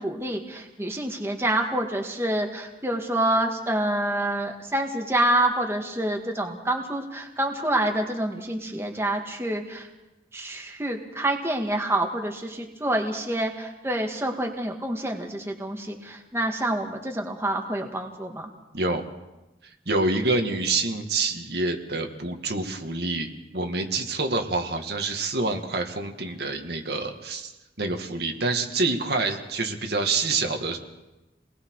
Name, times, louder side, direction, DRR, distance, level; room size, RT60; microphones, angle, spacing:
voice 1, 0.0-9.9 10.3-18.5, right 1 dB, 15° right, 2 dB, 2.0 m, -27 dB
voice 2, 19.9-27.5 27.8-30.8, right 3 dB, 65° right, 4 dB, 2.1 m, -27 dB
30.0 x 20.5 x 4.9 m, 1.0 s
head